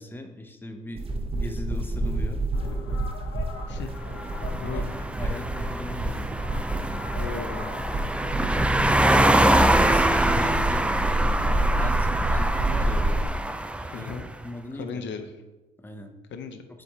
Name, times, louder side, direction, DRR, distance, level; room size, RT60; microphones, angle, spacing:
voice 1, 0.0-2.4 4.4-6.4 8.4-13.3 13.6-14.1 14.4-15.3 15.8-16.1, left 1 dB, 10° left, 4 dB, 0.8 m, -39 dB
sound 1, 1.0-13.3, right 1 dB, 30° right, 0.8 m, -28 dB
sound 2, 2.5-11.0, left 4 dB, 80° left, 1.0 m, -44 dB
sound 3, 4.0-14.3, right 1 dB, 5° right, 0.3 m, -24 dB
voice 2, 4.5-4.9 7.2-7.8 13.9-14.3 14.7-15.2 16.3-16.6, left 6 dB, 65° left, 7 dB, 0.6 m, -36 dB
7.4 x 3.4 x 4.1 m, 1.1 s
cardioid pair, 90°, 20 cm